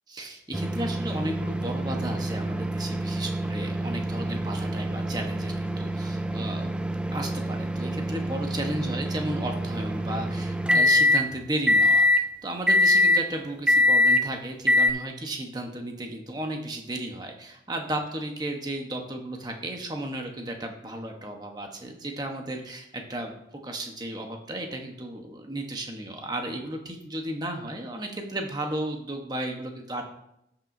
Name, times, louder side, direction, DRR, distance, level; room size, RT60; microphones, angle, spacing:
voice 1, 0.1-6.7 7.1-23.3 23.6-30.1, right 1 dB, 25° right, 3 dB, 1.1 m, -34 dB
sound 1, 0.5-11.2 11.7-12.2 12.7-13.2 13.7-14.2 14.7-14.9, left 1 dB, 5° right, 0.3 m, -24 dB
13.0 x 5.9 x 2.7 m, 0.79 s
head